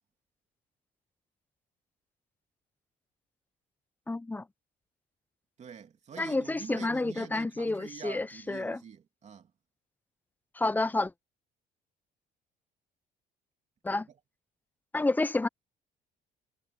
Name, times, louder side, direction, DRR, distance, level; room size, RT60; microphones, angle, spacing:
voice 1, 4.1-4.4 6.2-8.8 10.6-11.1 13.8-14.1 14.9-15.5, left 2 dB, 10° left, 0.7 m, -29 dB
voice 2, 5.6-9.5 14.1-14.2, right 7 dB, 40° right, 2.9 m, -46 dB
cardioid pair, 110°, 17 cm